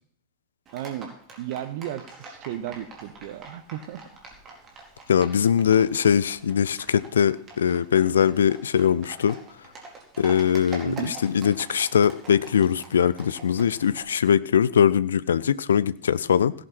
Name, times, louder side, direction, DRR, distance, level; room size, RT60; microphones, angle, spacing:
Livestock farm animals working animals, 0.7-14.0, right 3 dB, 25° right, 4.1 m, -45 dB
voice 1, 0.7-4.0 10.8-11.1, right 12 dB, 50° right, 14 dB, 1.0 m, -34 dB
voice 2, 5.1-9.4 10.2-16.5, left 8 dB, 65° left, 18 dB, 0.6 m, -21 dB
17.0 x 10.5 x 4.4 m, 0.65 s
figure-of-eight pair, 90°, 0 cm